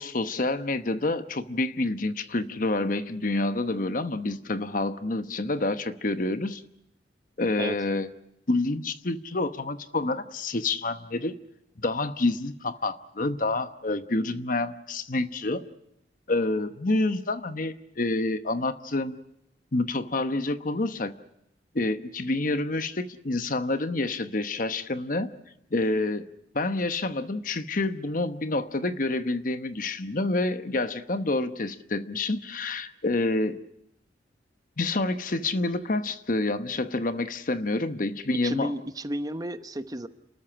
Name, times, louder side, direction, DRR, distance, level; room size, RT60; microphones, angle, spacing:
voice 1, 0.0-6.6 7.4-8.1 8.5-11.3 11.8-15.6 16.3-19.2 19.7-21.1 21.7-25.3 25.7-26.3 26.5-33.6 34.8-38.7, left 2 dB, 50° left, 10 dB, 1.0 m, -28 dB
voice 2, 38.4-40.1, right 1 dB, 20° right, 10 dB, 0.9 m, -32 dB
29.0 x 13.5 x 9.9 m, 0.83 s
head